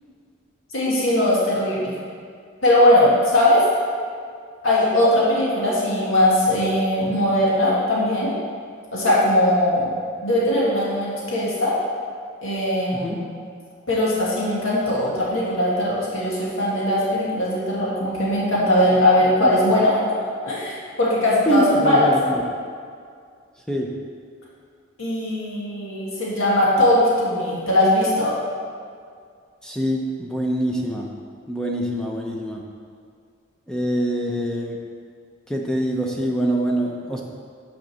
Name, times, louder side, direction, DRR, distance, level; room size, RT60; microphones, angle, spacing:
voice 1, 0.7-1.9 2.6-3.6 4.6-8.3 8.9-9.9 10.2-11.8 12.4-13.2 13.9-22.1 25.0-28.4, left 1 dB, 75° left, -6 dB, 1.8 m, -20 dB
voice 2, 21.5-22.4 23.7-23.9 29.6-31.1 31.5-32.6 33.7-34.8 35.5-37.2, right 1 dB, 5° left, -1 dB, 0.6 m, -24 dB
6.5 x 5.2 x 6.5 m, 2.2 s
head